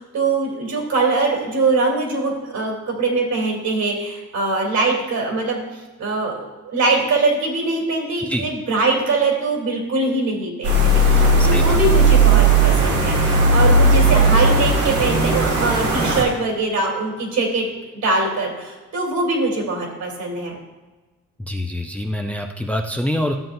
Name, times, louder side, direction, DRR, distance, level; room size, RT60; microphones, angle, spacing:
voice 1, 0.0-5.6 6.0-17.7 18.0-20.6, right 3 dB, 65° right, -1 dB, 3.1 m, -22 dB
sound 1, 10.6-16.2, right 2 dB, 85° right, 2.3 m, -16 dB
voice 2, 11.4-11.8 21.4-23.4, equal, 5° left, 4 dB, 0.6 m, -25 dB
13.0 x 7.5 x 2.6 m, 1.2 s
cardioid pair, 90°, 30 cm